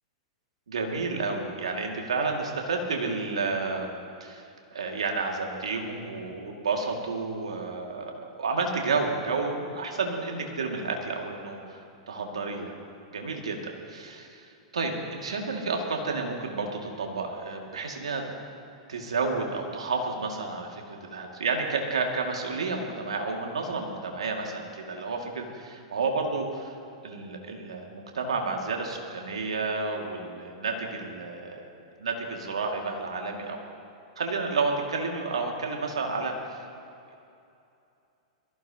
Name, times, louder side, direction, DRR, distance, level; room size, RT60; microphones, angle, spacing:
voice 1, 0.7-12.7 13.1-14.3 14.7-18.2 18.9-26.7 27.0-31.7 32.0-33.6 34.2-36.3, right 4 dB, 80° right, 1 dB, 2.2 m, -31 dB
22.0 x 15.0 x 2.9 m, 2.7 s
hypercardioid pair, 105°, 3 cm